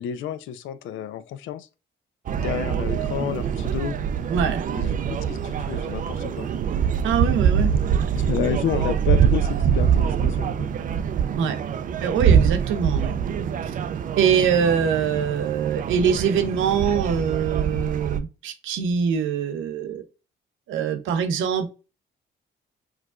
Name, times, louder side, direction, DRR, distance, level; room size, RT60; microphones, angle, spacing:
voice 1, 0.0-1.7 2.4-4.0 4.7-6.5 7.4-7.5 8.1-10.7, left 9 dB, 75° left, 0.4 m, -30 dB
sound 1, 2.3-18.2, right 8 dB, 45° right, 0.4 m, -24 dB
voice 2, 4.3-4.6 7.0-8.0 11.4-11.6 12.0-13.2 14.2-20.0 20.7-21.7, right 7 dB, 80° right, 0.6 m, -23 dB
4.5 x 2.3 x 2.3 m
cardioid pair, 90°, 20 cm